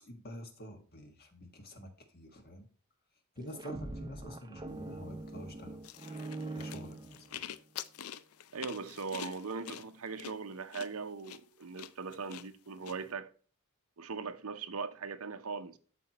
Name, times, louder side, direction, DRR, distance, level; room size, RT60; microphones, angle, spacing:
voice 1, 0.0-2.7 3.3-5.8 6.1-7.4, equal, 45° left, 1.7 m, -48 dB
sound 1, 3.4-7.6, right 2 dB, 20° right, 0.6 m, -43 dB
sound 2, 5.8-12.9, left 9 dB, 80° left, 0.5 m, -46 dB
voice 2, 8.5-13.3 14.0-15.8, right 4 dB, 85° right, 0.8 m, -40 dB
13.0 x 4.5 x 3.0 m
head